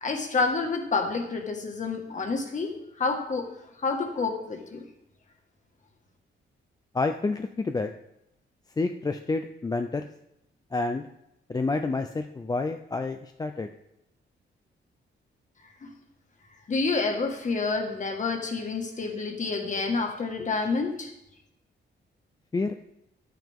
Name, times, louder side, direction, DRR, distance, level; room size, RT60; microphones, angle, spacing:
voice 1, 0.0-3.5 3.8-4.8 15.8-15.9 16.7-21.1, left 4 dB, 40° left, 4 dB, 1.7 m, -28 dB
voice 2, 6.9-7.9 8.8-10.1 10.7-11.1 11.5-13.7 22.5-22.7, left 3 dB, 20° left, 7 dB, 0.4 m, -29 dB
12.0 x 9.1 x 3.6 m, 0.86 s
wide cardioid pair, 135°, 20 cm